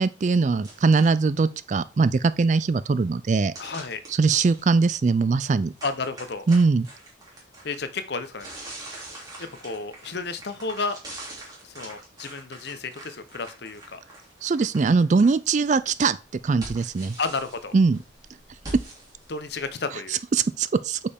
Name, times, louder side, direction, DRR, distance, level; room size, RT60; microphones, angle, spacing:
voice 1, 0.0-3.5 4.1-5.7 6.5-6.9 14.4-16.2 16.4-17.2 17.7-18.0 20.3-21.0, right 4 dB, 40° right, 0.3 m, -21 dB
sound 1, 0.6-1.2 3.5-4.6 5.8-7.8 8.3-15.3 15.7-19.7, right 1 dB, 20° right, 2.8 m, -43 dB
voice 2, 3.6-4.0 5.8-6.4 7.6-8.5 9.4-11.0 11.6-14.0 17.2-17.7 19.3-20.2, left 4 dB, 55° left, 0.8 m, -32 dB
8.3 x 5.4 x 3.5 m
head